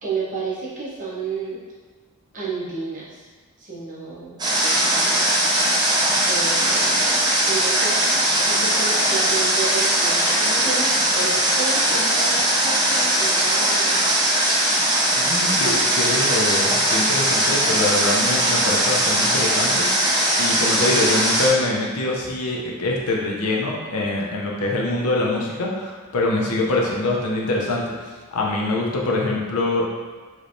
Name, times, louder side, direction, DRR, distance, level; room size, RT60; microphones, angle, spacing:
voice 1, 0.0-1.6 2.3-3.3 3.6-5.5 6.3-7.0 7.5-8.1 8.4-12.4 12.6-14.2, right 4 dB, 35° right, -8 dB, 0.9 m, -31 dB
Water, 4.4-21.5, right 1 dB, 20° right, 0.5 m, -20 dB
voice 2, 15.1-19.9 20.4-27.9 28.3-29.9, left 2 dB, 80° left, -2 dB, 0.6 m, -24 dB
3.2 x 3.1 x 2.6 m, 1.4 s
head